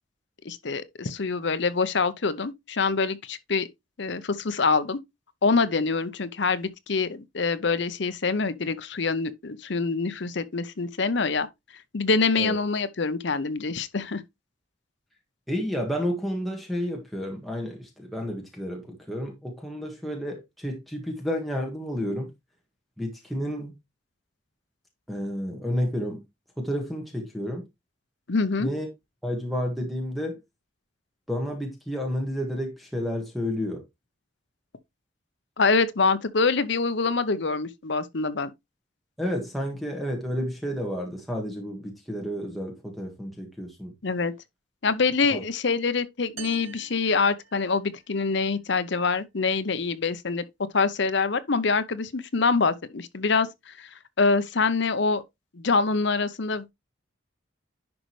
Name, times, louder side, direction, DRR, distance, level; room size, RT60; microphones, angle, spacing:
voice 1, 0.4-3.7 4.0-5.0 5.4-11.5 11.9-14.2 28.3-28.7 35.6-38.5 44.0-44.3 44.8-50.4 50.7-53.9 54.2-55.2 55.5-56.7, left 4 dB, 60° left, 0.7 m, -25 dB
voice 2, 15.5-22.3 23.0-23.7 25.1-26.2 26.6-27.6 28.6-28.9 29.2-30.4 31.3-33.8 39.2-43.9 45.3-45.4, equal, ahead, 1.7 m, -31 dB
sound 1, 46.4-48.1, right 9 dB, 80° right, 1.2 m, -45 dB
10.5 x 5.3 x 3.1 m
head